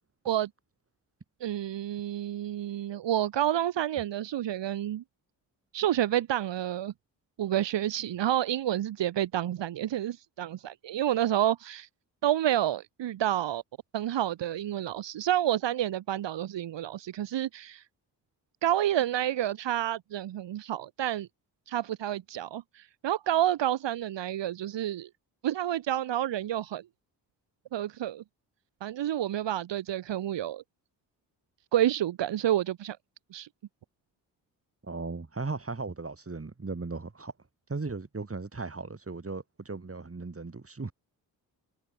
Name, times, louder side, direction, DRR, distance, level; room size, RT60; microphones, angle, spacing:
voice 1, 1.4-5.0 5.7-6.9 7.4-11.9 12.2-13.6 13.9-17.8 18.6-21.3 21.7-25.1 25.4-26.8 27.7-28.2 28.8-30.6 31.7-33.0 33.3-33.5, right 12 dB, 75° right, 2.7 m, -29 dB
voice 2, 34.8-37.3 37.7-40.9, right 3 dB, 30° right, 7.1 m, -37 dB
supercardioid pair, 50°, 43 cm